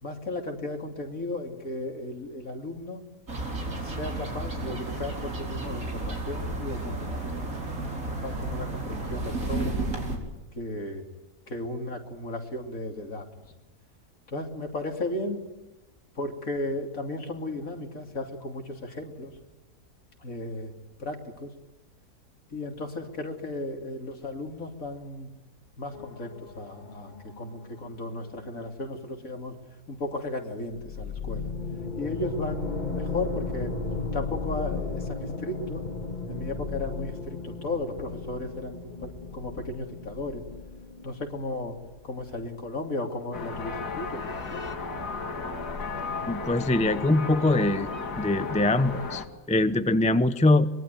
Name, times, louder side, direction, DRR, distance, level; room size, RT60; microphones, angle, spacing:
voice 1, 0.0-3.0 3.8-7.5 8.1-9.8 10.5-11.0 11.5-13.3 14.3-15.4 16.1-19.3 20.2-20.7 21.0-21.5 22.5-25.3 25.8-29.5 29.9-31.5 32.0-33.7 34.1-35.8 36.3-40.4 41.0-41.8 42.0-44.6, left 2 dB, 55° left, 3 dB, 3.4 m, -35 dB
sound 1, 3.3-10.2, right 2 dB, 55° right, 4.8 m, -32 dB
sound 2, 25.9-28.7 30.7-42.1 42.4-42.5 44.2-44.7, left 4 dB, 30° left, 2.0 m, -35 dB
sound 3, 43.3-49.3, left 4 dB, 80° left, 2.7 m, -34 dB
voice 2, 46.3-47.9 48.2-50.7, left 2 dB, 5° left, 11 dB, 0.6 m, -23 dB
24.0 x 22.0 x 9.3 m, 0.99 s
omnidirectional pair, 1.7 m